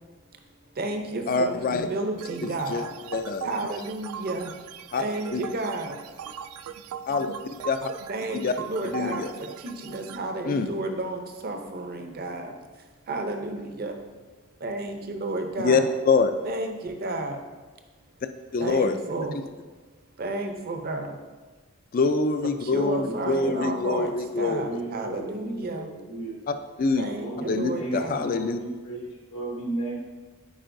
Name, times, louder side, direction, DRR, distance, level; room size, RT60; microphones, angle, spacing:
voice 1, 0.7-2.9 3.4-4.5 5.0-6.0 8.1-12.6 13.1-14.0 14.6-15.9 16.4-17.4 18.6-19.4 20.2-21.2 22.6-25.9 27.0-28.3, right 2 dB, 45° right, 5 dB, 0.6 m, -32 dB
voice 2, 1.3-1.9 2.4-2.8 3.1-3.5 4.9-5.0 5.3-5.4 7.1-7.3 7.6-7.9 8.4-8.5 8.8-9.3 10.4-10.7 15.6-16.3 18.5-19.0 21.9-24.6 26.5-27.1 27.5-28.6, left 4 dB, 40° left, 9 dB, 0.3 m, -25 dB
sound 1, 2.2-10.2, right 8 dB, 85° right, 0.3 m, -40 dB
voice 3, 22.9-23.6 24.4-26.4 27.1-30.0, right 2 dB, 85° left, -2 dB, 1.5 m, -35 dB
8.9 x 4.5 x 2.6 m, 1.3 s
head